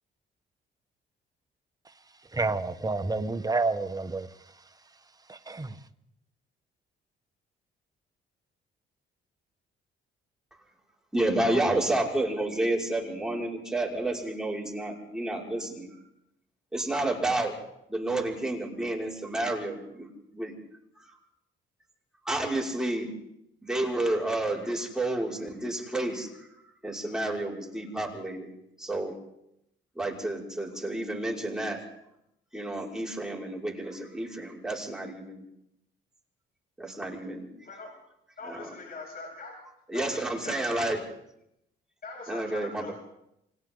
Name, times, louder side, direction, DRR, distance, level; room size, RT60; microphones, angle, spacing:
voice 1, 2.3-4.3 5.3-5.7, right 3 dB, 20° right, 8 dB, 1.4 m, -29 dB
voice 2, 11.1-15.9 16.7-17.6 17.9-20.1 20.3-20.5 21.0-21.1 22.2-23.1 23.6-26.5 26.8-28.5 28.8-29.1 30.0-31.8 32.5-35.4 36.8-37.5 38.5-38.7 39.9-41.0 42.3-42.9, right 1 dB, 5° right, -3 dB, 6.0 m, -30 dB
voice 3, 38.4-39.5 39.9-40.8 42.0-42.9, left 3 dB, 50° left, -1 dB, 8.0 m, -42 dB
29.5 x 25.0 x 4.0 m, 0.81 s
cardioid pair, 90°, 20 cm